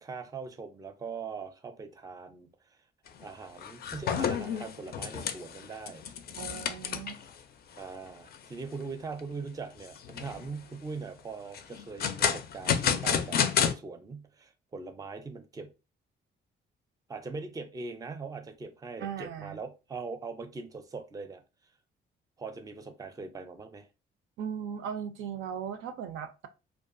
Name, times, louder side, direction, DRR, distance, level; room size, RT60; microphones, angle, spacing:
voice 1, 0.0-2.5 3.2-6.0 7.8-13.4 13.7-15.7 17.1-21.4 22.4-23.9, right 4 dB, 20° right, 0.4 m, -41 dB
sound 1, 3.1-3.2 3.6-7.3 7.8-7.9 8.3-8.4 8.9-9.3 9.9-10.5 11.5-13.7, left 7 dB, 50° left, 0.4 m, -30 dB
voice 2, 6.4-7.2 19.0-19.6 24.4-26.5, right 8 dB, 80° right, 0.4 m, -38 dB
2.4 x 2.2 x 2.5 m
cardioid pair, 90°, 20 cm